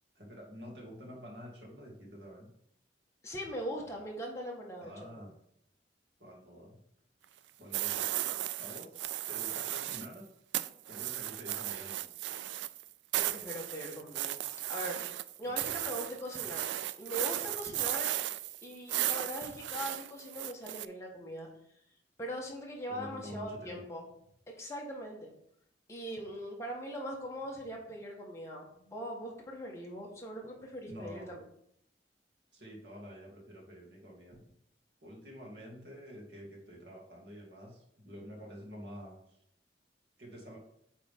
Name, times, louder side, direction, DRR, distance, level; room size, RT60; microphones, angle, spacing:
voice 1, 0.2-2.5 4.8-5.3 6.2-6.8 7.6-8.2 8.6-10.2 10.9-12.1 15.4-15.8 22.9-23.8 30.9-31.3 32.5-34.4 35.0-39.4 40.2-40.6, equal, 65° right, -2 dB, 2.2 m, -48 dB
voice 2, 3.2-5.1 13.2-15.0 15.4-16.7 17.0-18.1 18.6-21.5 22.2-24.0 24.6-25.3 25.9-31.4, equal, 15° left, -2 dB, 1.5 m, -41 dB
sound 1, 7.7-10.1 10.5-20.9, right 13 dB, 85° right, 0.3 m, -35 dB
8.8 x 3.9 x 3.7 m, 0.71 s
head